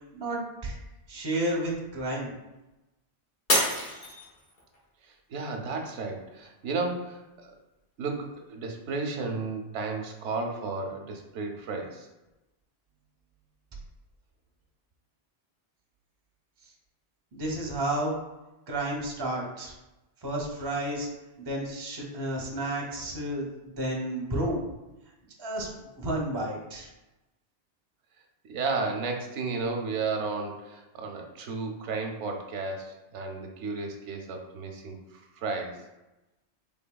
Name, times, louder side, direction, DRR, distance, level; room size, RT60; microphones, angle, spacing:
voice 1, 0.1-0.8 1.1-2.3 17.3-18.1 18.7-19.7 20.2-21.1 21.4-24.6 25.4-25.7 26.0-26.9, right 1 dB, 30° right, -1 dB, 0.6 m, -31 dB
Shatter, 3.5-4.8 5.3-5.8 6.3-6.4, left 1 dB, 55° left, 1.2 m, -27 dB
voice 2, 5.3-7.5 8.0-12.1 28.5-35.8, right 3 dB, 90° right, 3 dB, 0.9 m, -33 dB
3.7 x 3.4 x 2.2 m, 1.0 s
omnidirectional pair, 1.2 m